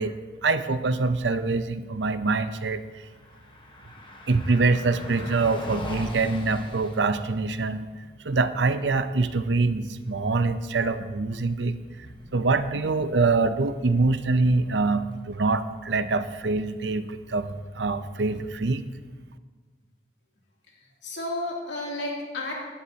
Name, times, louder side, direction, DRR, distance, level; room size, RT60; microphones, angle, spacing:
voice 1, 0.0-3.0 4.3-7.9 8.2-11.8 12.3-18.8, right 3 dB, 85° right, 11 dB, 0.7 m, -25 dB
Car passing by, 2.8-18.9, left 1 dB, 30° left, 1.2 m, -45 dB
voice 2, 20.7-22.5, left 2 dB, 90° left, -2 dB, 2.9 m, -32 dB
16.5 x 11.5 x 2.9 m, 1.4 s
head